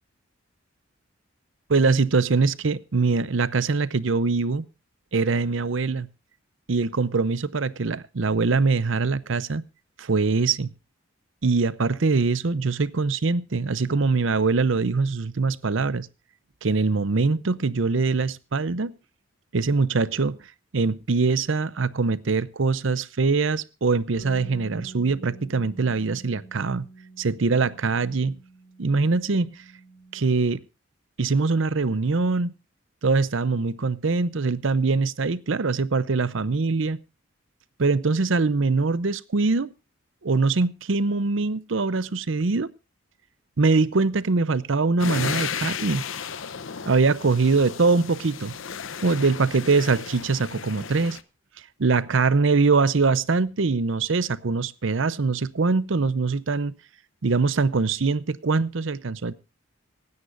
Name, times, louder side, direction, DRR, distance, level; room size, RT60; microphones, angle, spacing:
voice 1, 1.7-4.7 5.1-6.1 6.7-9.6 10.0-10.7 11.4-16.1 16.6-18.9 19.5-20.4 20.7-26.9 27.2-28.4 28.8-29.6 30.1-30.6 31.2-32.5 33.0-37.0 37.8-39.7 40.2-42.7 43.6-46.0 46.9-48.5 49.0-51.2 51.8-56.7 57.2-59.3, right 4 dB, 65° right, 0.7 m, -23 dB
Bass guitar, 24.2-30.4, right 3 dB, 45° left, 3.4 m, -46 dB
sound 1, 45.0-51.2, left 7 dB, 70° left, 0.8 m, -34 dB
26.0 x 9.6 x 2.5 m
head